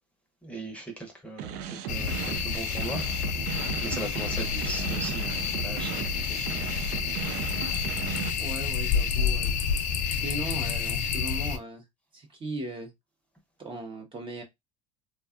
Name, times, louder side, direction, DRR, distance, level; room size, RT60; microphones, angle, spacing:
voice 1, 0.4-1.6 1.9-3.0 3.8-6.7, right 2 dB, 5° left, 0.7 m, -38 dB
sound 1, 1.4-8.3, right 8 dB, 65° right, 0.4 m, -36 dB
sound 2, 1.9-11.6, left 6 dB, 50° left, 0.4 m, -29 dB
voice 2, 8.4-9.6 10.1-11.9 12.1-12.9 13.6-14.4, right 2 dB, 30° right, 0.7 m, -38 dB
2.6 x 2.3 x 2.4 m
supercardioid pair, 110°, 18 cm